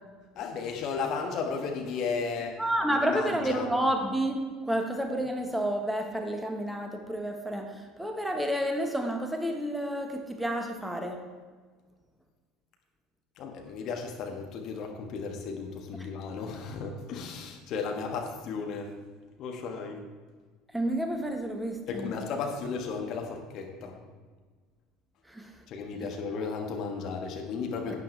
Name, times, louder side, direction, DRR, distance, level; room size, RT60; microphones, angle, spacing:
voice 1, 0.3-2.6 3.0-3.7 13.4-18.9 19.4-20.1 21.9-24.0 25.7-28.0, left 5 dB, 50° left, 2 dB, 1.5 m, -34 dB
voice 2, 2.6-11.2 20.7-22.2 25.3-25.5 27.9-28.0, right 1 dB, 5° right, 4 dB, 1.3 m, -30 dB
11.5 x 9.3 x 3.3 m, 1.4 s
figure-of-eight pair, 65°, 0 cm